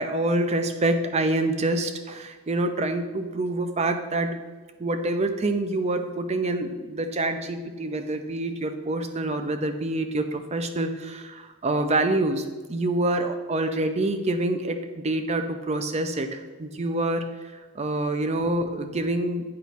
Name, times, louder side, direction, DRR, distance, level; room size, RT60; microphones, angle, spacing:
voice 1, 0.0-4.4 4.8-19.4, right 2 dB, 30° right, 7 dB, 0.5 m, -26 dB
8.5 x 3.1 x 5.8 m, 1.3 s
head